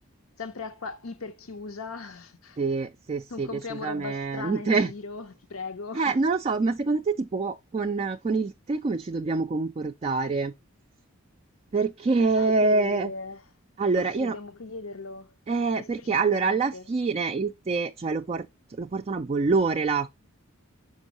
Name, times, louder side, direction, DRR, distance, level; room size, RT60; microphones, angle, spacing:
voice 1, 0.4-2.6 3.3-6.1 12.4-13.4 14.2-15.3 15.8-16.8, left 4 dB, 80° left, 0.8 m, -38 dB
voice 2, 2.6-4.9 5.9-10.5 11.7-13.1 13.8-14.4 15.5-20.1, right 4 dB, 30° right, 0.3 m, -26 dB
6.2 x 5.3 x 2.9 m
head